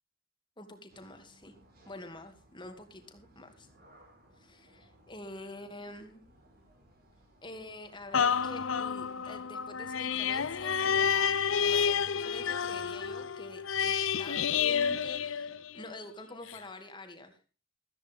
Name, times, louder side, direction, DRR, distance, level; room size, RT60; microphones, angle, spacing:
voice 1, 0.6-1.5 1.9-3.7 4.4-6.2 7.4-17.4, left 2 dB, 25° left, 6 dB, 2.5 m, -47 dB
sound 1, 0.9-13.3, right 1 dB, 50° right, 5.3 m, -62 dB
sound 2, 8.1-16.0 16.5-16.6, left 7 dB, 75° left, 0.7 m, -30 dB
14.5 x 14.0 x 3.6 m, 0.34 s
head